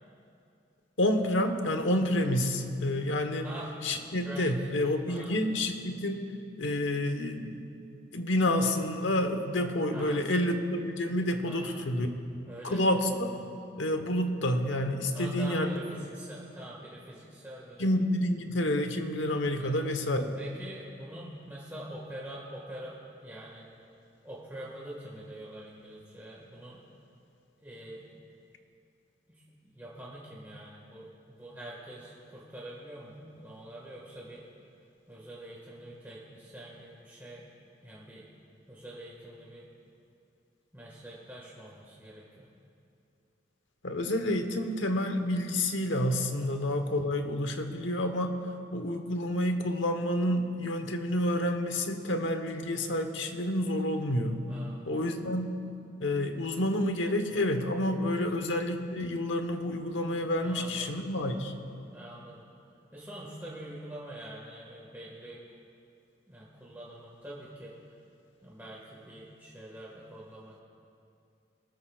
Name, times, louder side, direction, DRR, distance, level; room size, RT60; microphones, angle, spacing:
voice 1, 1.0-3.5 3.8-6.2 6.6-7.6 8.1-12.1 12.6-13.3 13.8-15.8 17.8-20.3 43.8-48.4 48.7-54.5 54.9-55.5 56.0-61.5, left 1 dB, 85° left, 6 dB, 1.1 m, -29 dB
voice 2, 9.9-10.3 11.4-11.8 12.5-12.8 13.5-13.6 15.1-17.9 19.6-19.8 20.4-23.6 24.2-26.8 27.6-28.2 29.3-34.4 35.1-37.4 37.8-38.3 38.7-39.7 40.7-42.5 46.3-46.6 54.5-55.2 58.2-58.4 60.4-60.9 61.9-62.4 62.9-65.4 66.3-67.7 68.4-70.6, right 1 dB, 10° right, -6 dB, 1.6 m, -45 dB
23.0 x 13.5 x 2.4 m, 2.6 s
head